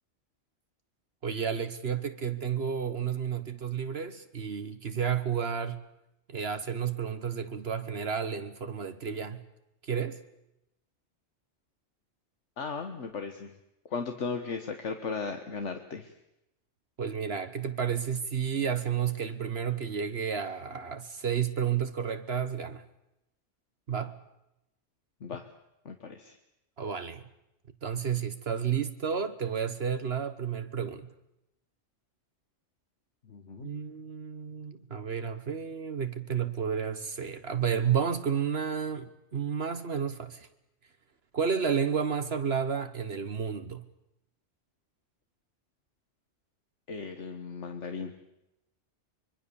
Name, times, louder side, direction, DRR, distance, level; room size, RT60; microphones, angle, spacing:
voice 1, 1.2-5.8 6.3-9.4 9.8-10.2 17.0-22.8 23.9-24.2 26.8-27.2 27.8-31.1 33.6-40.5 41.3-43.8, right 7 dB, 60° right, 1.4 m, -31 dB
voice 2, 12.6-13.5 13.9-16.1 25.2-25.5 25.9-26.4 33.3-33.7 46.9-48.1, left 5 dB, 75° left, 1.7 m, -36 dB
24.5 x 22.5 x 7.0 m
omnidirectional pair, 1.2 m